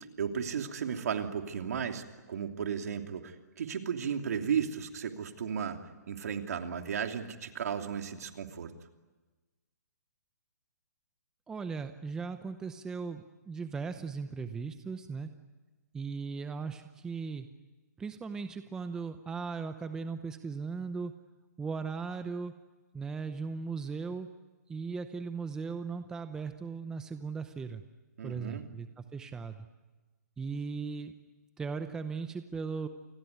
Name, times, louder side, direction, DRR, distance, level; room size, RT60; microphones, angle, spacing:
voice 1, 0.2-5.8 6.1-8.7 28.2-28.7, right 7 dB, 60° right, 5 dB, 3.0 m, -34 dB
voice 2, 11.5-15.3 15.9-17.5 18.0-21.1 21.6-22.5 22.9-24.3 24.7-27.8 28.2-29.7 30.4-31.1 31.6-32.9, right 5 dB, 5° right, 9 dB, 0.8 m, -38 dB
28.5 x 20.5 x 9.5 m, 1.2 s
hypercardioid pair, 160°, 9 cm